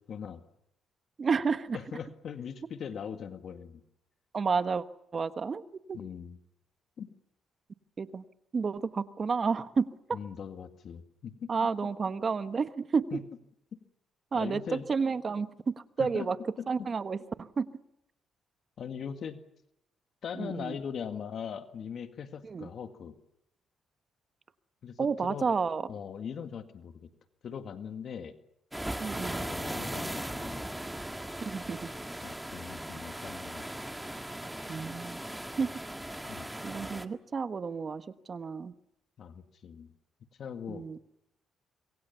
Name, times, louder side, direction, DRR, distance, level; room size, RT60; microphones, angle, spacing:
voice 1, 0.1-0.4 1.7-3.8 5.9-6.4 7.0-7.1 10.1-11.5 13.1-13.2 13.7-13.8 14.4-14.9 16.0-16.3 16.6-16.9 18.8-19.4 20.2-23.2 24.8-25.5 25.9-27.1 27.4-28.4 29.1-30.7 32.2-33.6 36.2-36.5 39.2-39.9 40.4-40.8, left 7 dB, 60° left, 7 dB, 1.9 m, -40 dB
voice 2, 1.2-1.8 4.3-4.8 5.1-5.6 5.9-6.0 8.0-8.2 8.5-10.2 11.5-13.1 14.3-16.4 16.7-17.7 20.3-20.8 22.4-22.7 25.0-25.9 29.0-29.5 31.4-31.9 34.7-35.2 35.6-35.7 36.6-38.7 40.7-41.0, right 5 dB, 40° right, 11 dB, 1.3 m, -31 dB
sound 1, 28.7-37.0, right 1 dB, 5° right, 1.6 m, -38 dB
26.0 x 22.5 x 7.1 m, 0.79 s
cardioid pair, 90°, 0 cm